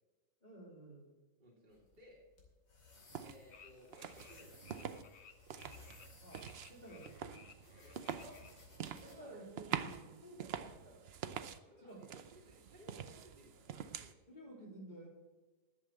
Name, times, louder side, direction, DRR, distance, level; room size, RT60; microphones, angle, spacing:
voice 1, 0.4-1.1 6.2-7.5 8.1-8.4 9.0-11.1 11.8-12.1 14.3-15.1, right 1 dB, 25° left, -1 dB, 3.2 m, -53 dB
voice 2, 1.4-2.2 3.2-5.1 7.7-8.3 8.9-9.4 11.6-14.2, equal, 25° right, -4 dB, 2.3 m, -61 dB
sound 1, 1.7-9.2, left 4 dB, 80° left, 3.3 m, -62 dB
sound 2, 3.1-3.4 3.9-5.0 5.4-11.6 12.0-14.1, right 8 dB, 80° right, 0.5 m, -46 dB
sound 3, 3.5-8.7, left 6 dB, 50° left, 1.0 m, -60 dB
11.0 x 7.6 x 7.4 m, 1.2 s
omnidirectional pair, 1.9 m